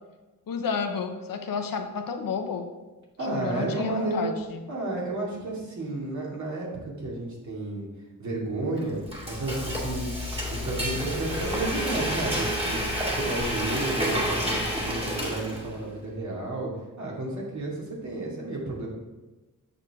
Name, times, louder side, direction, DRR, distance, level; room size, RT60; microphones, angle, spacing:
voice 1, 0.5-2.7 3.2-4.6, left 5 dB, 85° left, 5 dB, 0.9 m, -31 dB
voice 2, 3.2-4.3 4.7-7.9 8.2-9.0 9.3-12.8 13.1-16.7 17.0-18.9, right 2 dB, 60° right, -4 dB, 2.5 m, -32 dB
Frying (food), 8.8-15.8, equal, 15° right, 2.1 m, -29 dB
8.2 x 6.6 x 3.7 m, 1.2 s
wide cardioid pair, 90°, 33 cm